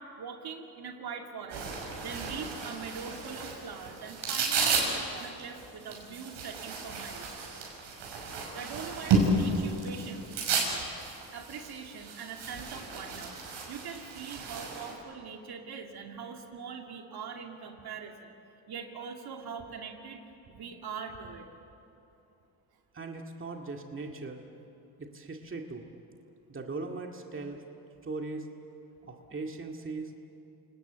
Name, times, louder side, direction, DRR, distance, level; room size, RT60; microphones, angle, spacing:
voice 1, 0.2-1.7 2.0-7.3 8.5-10.2 11.3-13.4 13.7-18.3 18.7-21.5, right 6 dB, 60° right, 3 dB, 2.6 m, -42 dB
sound 1, 1.5-14.9, right 3 dB, 80° right, 6.2 m, -33 dB
voice 2, 22.9-24.4 25.0-25.9 26.5-27.6 28.0-28.5 29.0-30.1, right 3 dB, 30° right, 2 dB, 2.2 m, -39 dB
28.5 x 19.5 x 8.1 m, 2.8 s
cardioid pair, 85°, 43 cm